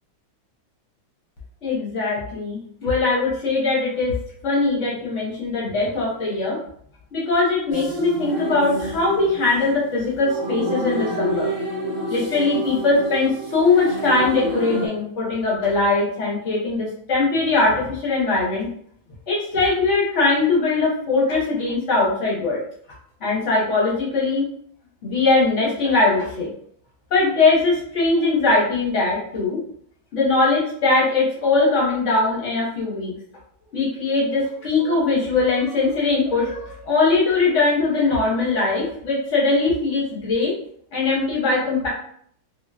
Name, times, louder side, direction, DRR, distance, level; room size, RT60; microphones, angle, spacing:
voice 1, 1.6-4.1 4.4-6.6 7.1-11.5 12.1-18.7 19.3-22.6 23.2-24.5 25.0-26.5 27.1-29.6 30.1-33.1 33.7-40.5 40.9-41.9, left 3 dB, 55° left, -4 dB, 0.8 m, -21 dB
sound 1, 7.7-14.9, right 1 dB, 35° right, 1.2 m, -29 dB
3.7 x 2.3 x 2.3 m, 0.64 s
omnidirectional pair, 2.3 m